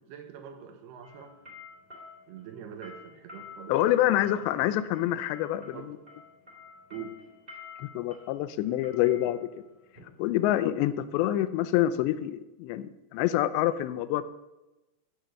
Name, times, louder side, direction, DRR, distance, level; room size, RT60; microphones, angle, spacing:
voice 1, 0.0-1.4 2.3-4.6 5.7-6.0 6.9-7.2, right 7 dB, 75° right, 6 dB, 2.9 m, -44 dB
sound 1, 1.0-10.9, left 4 dB, 15° right, 2.3 m, -50 dB
voice 2, 3.7-5.8 7.8-9.4 10.2-14.2, left 13 dB, 85° left, 14 dB, 2.9 m, -26 dB
15.0 x 8.1 x 6.7 m, 1.0 s
omnidirectional pair, 4.9 m